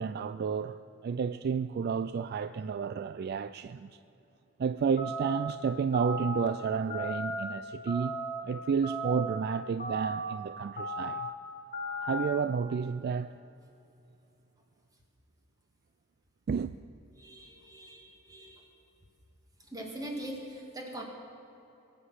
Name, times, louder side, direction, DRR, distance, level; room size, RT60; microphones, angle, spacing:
voice 1, 0.0-3.9 4.6-11.3 12.0-13.3 16.5-16.8, right 6 dB, 50° right, 0.3 m, -31 dB
sound 1, 5.0-5.5 5.9-6.5 6.9-7.4 7.9-8.4 8.8-9.4 9.8-10.3 10.8-11.3 11.7-12.3, equal, 40° left, 2.0 m, -35 dB
voice 2, 17.2-18.7 19.7-21.0, right 1 dB, 20° right, 2.2 m, -42 dB
21.5 x 8.0 x 6.4 m
head